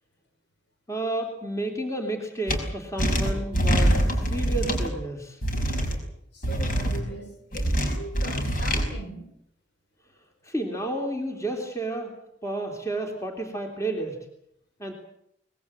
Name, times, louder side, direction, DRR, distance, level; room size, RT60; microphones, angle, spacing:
voice 1, 0.9-5.4 10.4-12.2 12.4-14.2 14.8-14.9, right 2 dB, 15° left, 2 dB, 3.3 m, -31 dB
sound 1, 2.5-2.6 3.0-4.9 5.4-6.0 6.4-7.0 7.5-8.8, equal, 45° left, 5.4 m, -24 dB
voice 2, 6.3-9.3, right 1 dB, 65° left, 5 dB, 5.9 m, -40 dB
24.0 x 21.0 x 7.8 m, 0.75 s
head